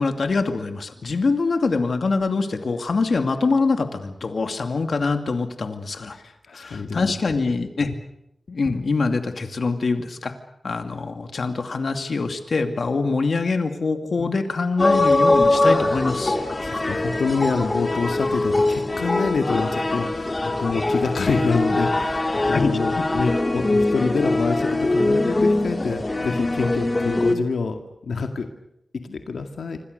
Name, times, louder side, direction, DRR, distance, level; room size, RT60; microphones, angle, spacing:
voice 1, 0.0-6.2 6.5-7.9 8.5-10.3 10.6-16.4 22.4-22.7 23.0-23.1, left 4 dB, 60° left, 7 dB, 2.5 m, -24 dB
voice 2, 6.1-7.1 7.8-7.9 14.2-14.3 16.3-28.5 28.9-29.8, left 4 dB, 85° left, 5 dB, 2.1 m, -27 dB
sound 1, 14.8-27.3, left 2 dB, 30° left, 3.0 m, -22 dB
26.5 x 26.0 x 6.8 m, 0.79 s
wide cardioid pair, 120°, 0 cm